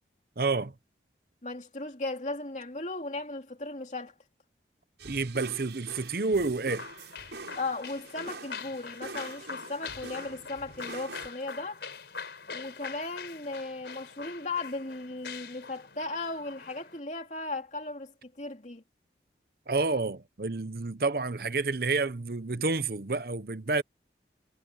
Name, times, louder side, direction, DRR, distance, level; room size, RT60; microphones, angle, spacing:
voice 1, 0.4-0.7 5.0-6.9 19.7-23.8, right 3 dB, 55° right, 0.8 m, -29 dB
voice 2, 1.4-4.1 7.5-11.8 12.5-18.8, left 2 dB, 40° left, 2.9 m, -36 dB
sound 1, 5.0-11.3, right 3 dB, 80° right, 7.6 m, -45 dB
sound 2, 6.7-17.0, left 6 dB, 75° left, 4.3 m, -44 dB
head